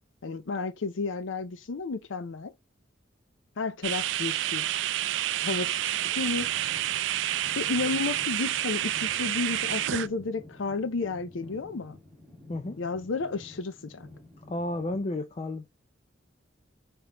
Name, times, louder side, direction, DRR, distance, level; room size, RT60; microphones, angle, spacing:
voice 1, 0.2-2.5 3.6-4.7 5.4-6.5 7.5-12.0 12.8-14.1, left 4 dB, 80° left, 0.6 m, -32 dB
sound 1, 3.8-10.1, right 13 dB, 70° right, 0.3 m, -29 dB
sound 2, 6.1-15.0, left 1 dB, 5° right, 2.0 m, -50 dB
voice 2, 14.5-15.7, left 2 dB, 35° left, 0.5 m, -32 dB
5.0 x 3.0 x 3.0 m
head